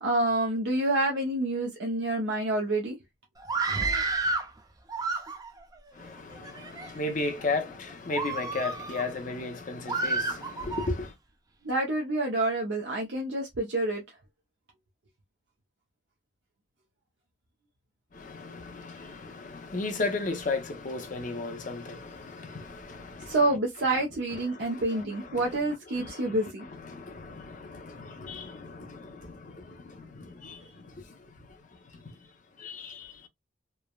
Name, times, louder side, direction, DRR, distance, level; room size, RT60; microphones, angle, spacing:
voice 1, 0.0-3.0 11.6-14.0 23.3-26.7, right 2 dB, 65° right, 0.6 m, -28 dB
Screaming, 3.4-4.5 4.9-5.6 6.3-6.9 7.4-7.6 8.1-9.1 9.9-10.9, right 3 dB, 20° right, 0.5 m, -30 dB
voice 2, 6.0-11.1 18.2-23.4 24.3-25.6 25.9-29.8 30.4-30.6 32.6-33.1, left 3 dB, 45° left, 0.6 m, -35 dB
3.2 x 2.1 x 2.2 m
head